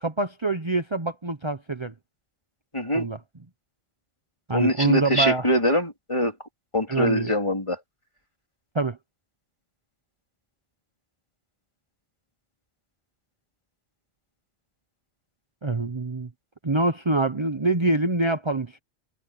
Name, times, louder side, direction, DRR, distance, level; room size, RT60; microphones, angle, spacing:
voice 1, 0.0-1.9 2.9-3.2 4.5-5.5 6.9-7.3 8.7-9.0 15.6-16.3 16.6-18.8, right 2 dB, 25° right, 1.1 m, -25 dB
voice 2, 2.7-3.1 4.5-6.3 6.7-7.8, equal, 25° left, 3.9 m, -23 dB
omnidirectional pair, 1.1 m